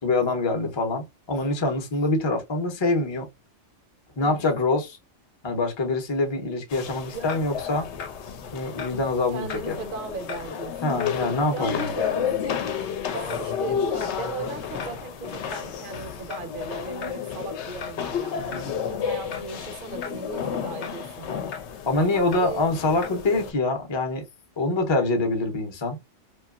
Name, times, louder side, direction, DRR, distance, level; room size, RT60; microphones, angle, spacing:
voice 1, 0.0-3.3 4.2-4.9 5.4-7.9 8.5-9.8 10.8-11.9 21.9-24.2 24.6-26.0, left 2 dB, 30° left, 0.6 m, -25 dB
voice 2, 4.2-4.6 7.1-7.7 9.3-11.1 11.5-21.4 22.0-22.8, right 4 dB, 55° right, 0.7 m, -37 dB
sound 1, 6.7-23.5, left 7 dB, 70° left, 0.8 m, -31 dB
2.8 x 2.3 x 2.3 m
omnidirectional pair, 1.3 m